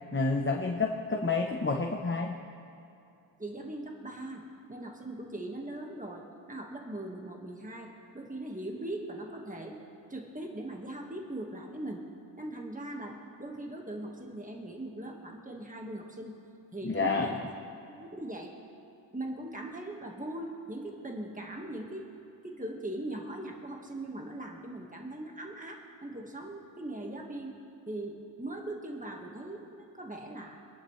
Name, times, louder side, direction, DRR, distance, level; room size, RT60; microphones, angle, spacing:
voice 1, 0.1-2.3 16.8-17.4, left 3 dB, 25° left, 2 dB, 0.9 m, -29 dB
voice 2, 3.4-9.8 10.1-12.0 12.4-16.3 16.7-17.4 17.9-18.5 19.1-22.1 22.4-27.6 27.9-30.6, right 1 dB, 15° right, 1 dB, 1.6 m, -40 dB
25.0 x 11.0 x 3.2 m, 2.8 s
wide cardioid pair, 45°, 46 cm